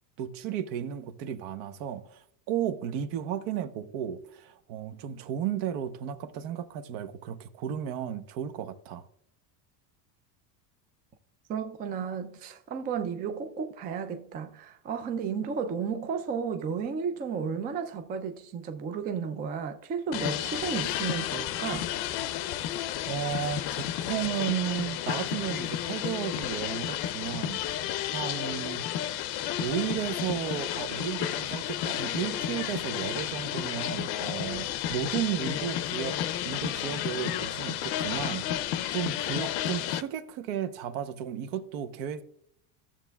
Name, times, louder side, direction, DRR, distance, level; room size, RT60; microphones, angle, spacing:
voice 1, 0.2-9.0 23.1-27.6 28.1-28.9 29.6-36.2 36.4-42.2, right 9 dB, 65° right, 0.9 m, -34 dB
voice 2, 11.5-21.9, right 6 dB, 20° right, 0.3 m, -33 dB
sound 1, 20.1-40.0, left 11 dB, 55° left, 0.6 m, -32 dB
13.0 x 7.3 x 2.3 m
supercardioid pair, 135°, 48 cm